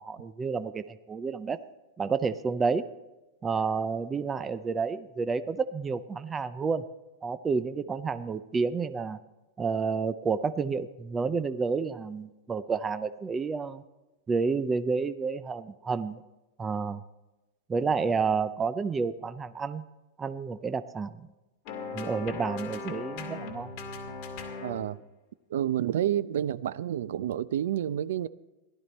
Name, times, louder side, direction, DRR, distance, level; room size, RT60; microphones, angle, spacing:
voice 1, 0.0-1.6 2.0-2.9 3.4-6.8 7.2-9.2 9.6-13.8 14.3-16.2 16.6-17.0 17.7-19.8 20.2-21.3 21.9-23.7, right 5 dB, 10° right, 0.4 m, -30 dB
sound 1, 21.7-24.9, left 4 dB, 35° left, 2.1 m, -38 dB
voice 2, 24.6-25.0 25.5-28.3, right 11 dB, 75° right, 0.5 m, -29 dB
16.5 x 12.0 x 4.2 m
supercardioid pair, 170°, 0 cm